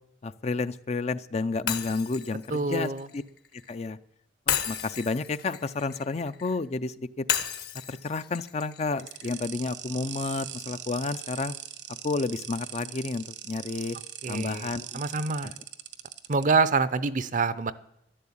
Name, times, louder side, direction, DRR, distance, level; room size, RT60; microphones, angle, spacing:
voice 1, 0.2-3.2 3.7-4.0 4.5-7.2 7.9-11.5 12.0-14.0 14.3-15.0 15.4-15.5, left 3 dB, 40° left, 13 dB, 0.5 m, -31 dB
Shatter, 1.7-3.7 4.5-6.6 7.3-9.4, left 9 dB, 65° left, 1.4 m, -33 dB
voice 2, 2.5-3.1 14.2-15.5 16.3-17.7, right 4 dB, 45° right, 15 dB, 0.6 m, -26 dB
sound 1, 9.0-16.4, right 11 dB, 80° right, 1.1 m, -40 dB
12.0 x 11.5 x 8.6 m, 0.81 s
head